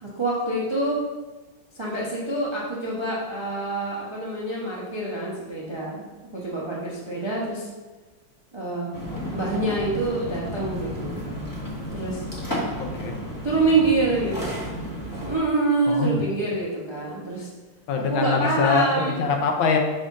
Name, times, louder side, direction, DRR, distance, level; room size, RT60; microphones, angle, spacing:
voice 1, 0.0-1.0 1.7-6.1 6.3-7.7 8.5-8.9 9.3-11.2 11.9-12.2 13.4-14.7 15.2-17.5 18.0-19.2, right 2 dB, 50° right, -6 dB, 0.3 m, -26 dB
sound 1, 8.9-15.4, equal, 15° left, 0.6 m, -32 dB
voice 2, 12.8-13.2 15.9-16.2 17.9-19.8, left 5 dB, 70° left, 3 dB, 1.4 m, -23 dB
5.6 x 5.1 x 3.6 m, 1.2 s
omnidirectional pair, 2.3 m